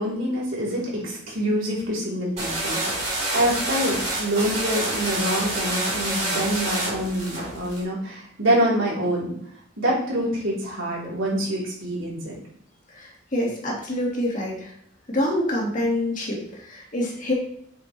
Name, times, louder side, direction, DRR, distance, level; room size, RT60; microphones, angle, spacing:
voice 1, 0.0-2.8 3.3-9.3 9.8-12.4, equal, 75° right, -6 dB, 3.8 m, -26 dB
sound 1, 2.4-7.8, right 2 dB, 35° right, 3.7 m, -27 dB
voice 2, 12.9-14.7 15.1-17.3, left 1 dB, 40° left, -2 dB, 2.2 m, -26 dB
8.1 x 7.0 x 3.4 m, 0.65 s
head